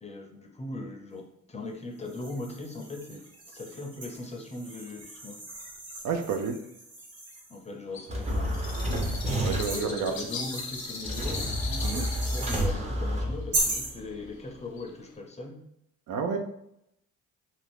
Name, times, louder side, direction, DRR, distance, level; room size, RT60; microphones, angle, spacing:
voice 1, 0.0-5.4 7.5-8.6 9.7-15.6, left 2 dB, 20° left, 2 dB, 0.5 m, -39 dB
sound 1, 2.0-7.6 8.2-12.7 13.5-14.0, right 2 dB, 50° right, 1.2 m, -38 dB
voice 2, 6.0-6.6 9.4-10.1 11.8-12.0 16.1-16.4, right 6 dB, 75° right, 5 dB, 0.5 m, -30 dB
Bird, 7.9-15.2, left 4 dB, 65° left, 0.7 m, -40 dB
sound 2, 8.1-9.9 11.0-13.9, equal, 20° right, 0.6 m, -30 dB
2.6 x 2.4 x 3.4 m, 0.77 s
cardioid pair, 90°, 30 cm